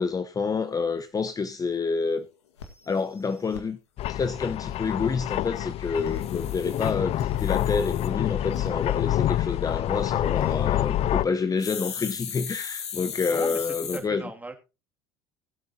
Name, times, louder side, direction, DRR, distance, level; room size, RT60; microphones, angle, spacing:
voice 1, 0.0-2.3 2.9-3.8 4.1-14.2, left 5 dB, 25° left, 1.2 m, -28 dB
sound 1, 1.4-1.5 1.9-2.0 2.2-2.3 2.6-3.6 5.9-8.1 8.5-8.7 10.2-10.6 11.6-14.0, left 7 dB, 85° left, 2.0 m, -37 dB
sound 2, 4.0-11.2, left 13 dB, 50° left, 0.6 m, -27 dB
voice 2, 13.2-14.5, right 2 dB, 10° right, 2.7 m, -37 dB
19.5 x 8.4 x 2.9 m
hypercardioid pair, 70°, 14 cm